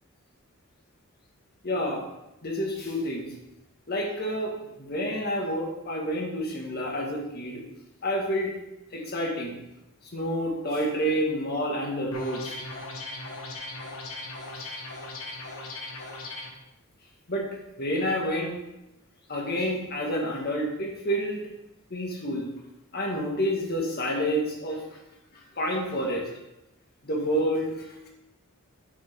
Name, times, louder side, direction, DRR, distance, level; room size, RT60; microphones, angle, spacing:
voice 1, 1.6-2.0 2.4-3.3 3.9-7.6 8.0-8.5 8.9-9.6 10.0-12.6 14.6-14.7 17.3-17.5 17.8-18.5 19.3-21.4 21.9-22.5 22.9-25.0 25.3-26.4 27.0-28.1, equal, 45° left, -1 dB, 1.7 m, -29 dB
sound 1, 12.1-16.5, left 2 dB, 70° left, 1.3 m, -38 dB
8.9 x 6.6 x 3.6 m, 0.90 s
head